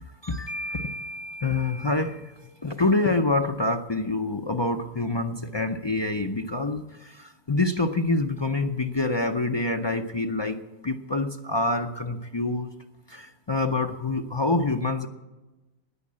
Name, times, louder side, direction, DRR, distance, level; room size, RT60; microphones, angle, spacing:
voice 1, 0.0-2.3 2.6-10.6 10.8-12.7 13.1-15.1, left 2 dB, 40° left, 5 dB, 0.4 m, -26 dB
14.0 x 9.5 x 8.6 m, 1.1 s
omnidirectional pair, 1.4 m